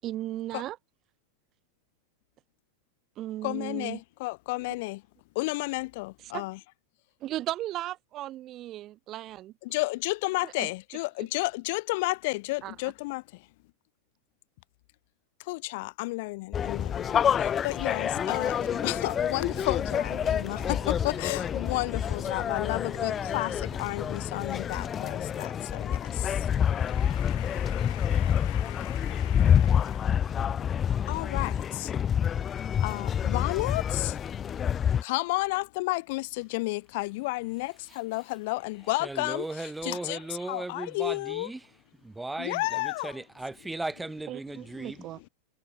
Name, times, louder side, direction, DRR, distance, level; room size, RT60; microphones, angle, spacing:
voice 1, 0.0-0.8 3.2-4.0 6.3-6.5 7.2-9.5 10.4-10.7 12.6-12.7 44.3-45.2, right 14 dB, 35° right, 0.9 m, -36 dB
voice 2, 3.4-5.0 5.3-6.6 9.6-13.5 15.4-30.2 31.1-31.9 32.8-34.2 35.0-41.5 42.4-43.2, left 23 dB, 50° left, 0.9 m, -32 dB
sound 1, 16.5-35.0, left 8 dB, 25° left, 0.3 m, -28 dB
sound 2, 17.6-26.7, right 18 dB, 50° right, 7.8 m, -50 dB
voice 3, 39.0-41.6 42.0-45.1, right 2 dB, 5° right, 2.0 m, -37 dB
figure-of-eight pair, 90°, 0 cm